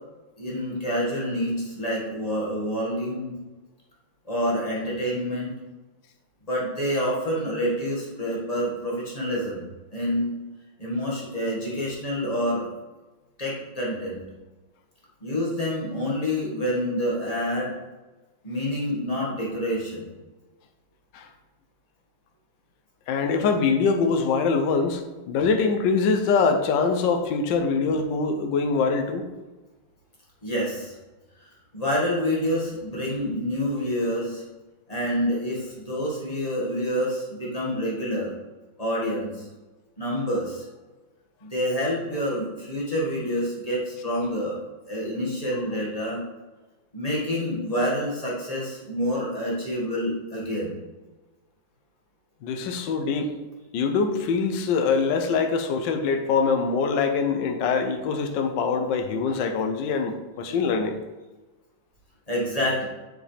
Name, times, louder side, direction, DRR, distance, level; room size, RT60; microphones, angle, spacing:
voice 1, 0.4-3.4 4.3-5.5 6.5-9.6 9.9-10.3 10.8-12.7 13.4-14.2 15.2-17.7 18.4-20.1 30.4-30.9 31.4-34.4 34.9-38.3 38.8-39.5 40.0-40.7 41.4-44.6 44.9-46.2 46.9-50.8 62.3-62.9, equal, 20° left, -5 dB, 1.8 m, -27 dB
voice 2, 23.1-25.0 25.3-29.3 52.4-53.3 53.7-61.0, left 5 dB, 70° left, 4 dB, 1.4 m, -23 dB
7.3 x 6.0 x 3.4 m, 1.2 s
omnidirectional pair, 2.2 m